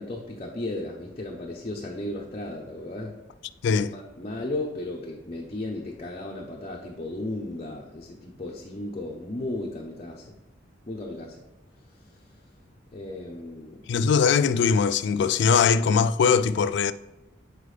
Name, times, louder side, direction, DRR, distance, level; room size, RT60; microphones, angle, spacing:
voice 1, 0.0-3.2 3.9-10.4 10.9-11.4 11.9-12.3 12.9-13.9, left 1 dB, 35° left, 0.7 m, -35 dB
voice 2, 13.9-16.9, left 6 dB, 65° left, 0.3 m, -21 dB
8.2 x 4.7 x 3.3 m
head